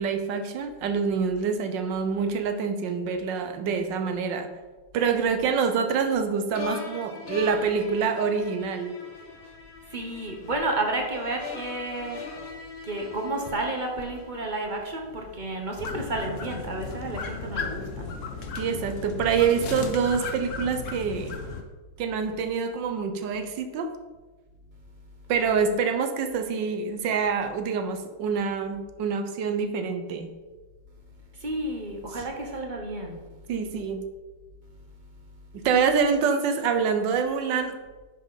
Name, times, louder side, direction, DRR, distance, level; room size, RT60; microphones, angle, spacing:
voice 1, 0.0-4.5 4.9-9.0 18.6-21.4 22.0-23.9 25.3-30.3 32.1-32.2 33.5-34.0 35.6-37.8, right 6 dB, 70° right, 8 dB, 1.4 m, -26 dB
sound 1, 6.5-14.7, left 5 dB, 85° left, 2.2 m, -41 dB
voice 2, 9.9-12.2 12.8-18.1 31.4-33.2, right 2 dB, 35° right, 2 dB, 0.8 m, -31 dB
sound 2, 15.8-21.6, left 4 dB, 50° left, 1.0 m, -35 dB
10.0 x 5.4 x 4.0 m, 1.3 s
omnidirectional pair, 2.2 m